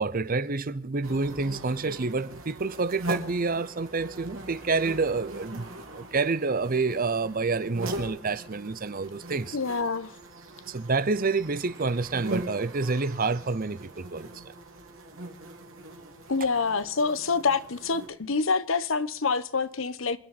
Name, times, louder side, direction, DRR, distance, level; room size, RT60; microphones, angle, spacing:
voice 1, 0.0-9.6 10.7-14.5, right 3 dB, 45° right, 0.8 m, -28 dB
sound 1, 1.0-18.1, right 2 dB, 80° right, 3.6 m, -41 dB
voice 2, 9.5-10.1 16.3-20.2, left 4 dB, 70° left, 1.0 m, -26 dB
27.5 x 10.5 x 4.2 m
head